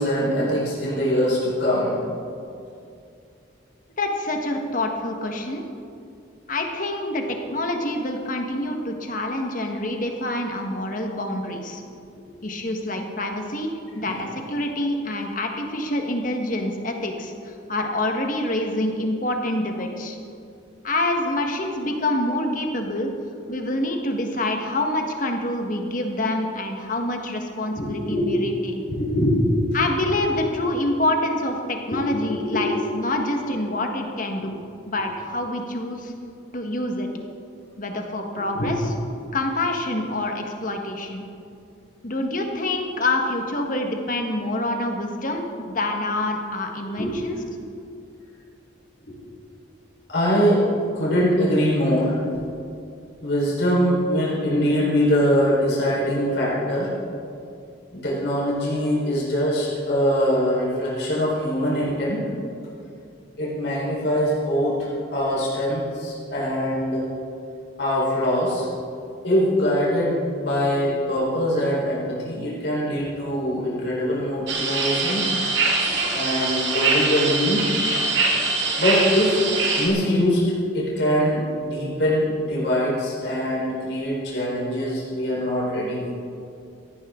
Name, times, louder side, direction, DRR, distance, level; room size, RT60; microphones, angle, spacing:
voice 1, 0.0-2.0 14.0-14.2 27.8-28.4 28.8-29.8 31.9-32.0 32.5-32.6 38.5-38.7 46.9-47.1 49.1-49.2 50.1-50.6 50.9-52.2 53.2-56.9 57.9-62.3 63.4-67.1 67.8-68.7 69.2-75.3 75.8-77.7 78.8-86.1, equal, 60° left, -6 dB, 4.4 m, -23 dB
voice 2, 4.0-5.6 6.5-11.8 12.4-20.2 20.8-23.1 23.5-28.9 29.7-34.6 34.9-36.1 36.5-37.1 37.8-38.8 39.3-41.2 42.0-47.4, left 1 dB, 45° left, 3 dB, 1.6 m, -26 dB
sound 1, 74.5-79.9, right 3 dB, 65° right, 2.3 m, -23 dB
17.0 x 14.5 x 3.9 m, 2.5 s
head